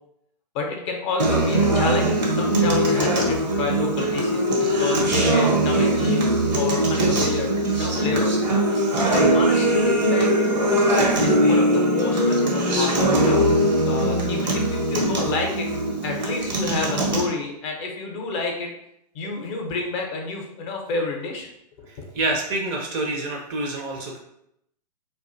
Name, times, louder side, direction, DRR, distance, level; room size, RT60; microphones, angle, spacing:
voice 1, 0.5-8.3 9.1-10.9 11.2-13.5 13.9-15.7 16.0-18.7 19.1-21.5 22.0-22.1, left 3 dB, 40° left, 2 dB, 0.6 m, -30 dB
Acoustic guitar, 1.2-17.2, right 1 dB, 90° right, 0.9 m, -21 dB
voice 2, 21.9-24.2, right 2 dB, 30° right, 1 dB, 0.4 m, -27 dB
2.5 x 2.2 x 2.5 m, 0.77 s
hypercardioid pair, 125°, 21 cm